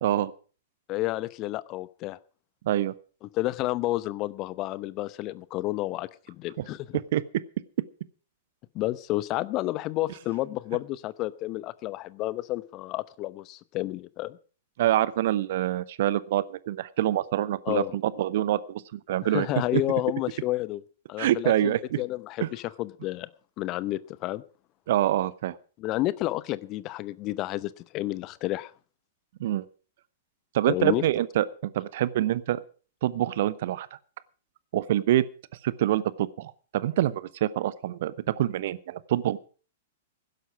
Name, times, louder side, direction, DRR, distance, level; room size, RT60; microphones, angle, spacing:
voice 1, 0.0-0.3 2.6-2.9 6.6-6.7 7.1-7.2 14.8-19.5 19.7-19.8 21.2-22.0 22.4-22.5 24.9-25.6 29.4-29.7 30.5-32.6 33.0-33.9 34.7-35.2 35.6-39.4, right 13 dB, 50° right, 19 dB, 0.8 m, -26 dB
voice 2, 0.9-2.2 3.2-6.1 6.4-7.0 8.7-14.4 17.7-18.0 19.2-20.8 21.1-23.3 23.6-24.4 25.8-28.7 30.7-31.0, left 17 dB, 35° left, 18 dB, 0.8 m, -30 dB
16.0 x 12.0 x 4.9 m, 0.38 s
figure-of-eight pair, 105°, 0 cm